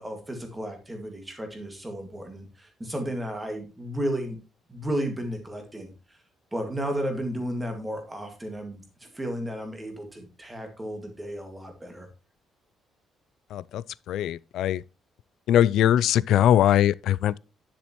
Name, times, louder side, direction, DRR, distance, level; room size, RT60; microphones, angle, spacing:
voice 1, 0.0-4.4 4.7-6.2 6.5-12.1, equal, 10° right, 2.0 m, -33 dB
voice 2, 13.5-14.8 15.5-17.4, left 11 dB, 65° left, 0.3 m, -21 dB
10.0 x 7.3 x 3.0 m
cardioid pair, 175°, 0 cm